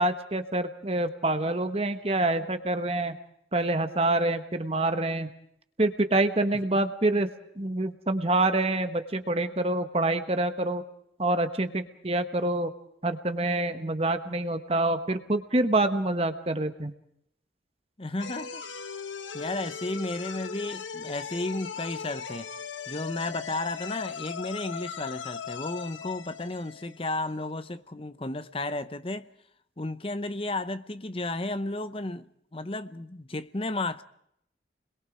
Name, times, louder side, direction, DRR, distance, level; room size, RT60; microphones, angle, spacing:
voice 1, 0.0-3.1 3.5-5.3 5.8-7.3 7.6-10.8 11.2-12.7 13.0-16.9, right 2 dB, 30° right, 1.2 m, -26 dB
voice 2, 18.0-18.6 19.3-22.5 22.9-29.3 29.8-34.0, left 2 dB, 30° left, 0.8 m, -33 dB
sound 1, 18.2-27.4, left 6 dB, 90° left, 1.3 m, -39 dB
29.5 x 22.0 x 5.0 m
head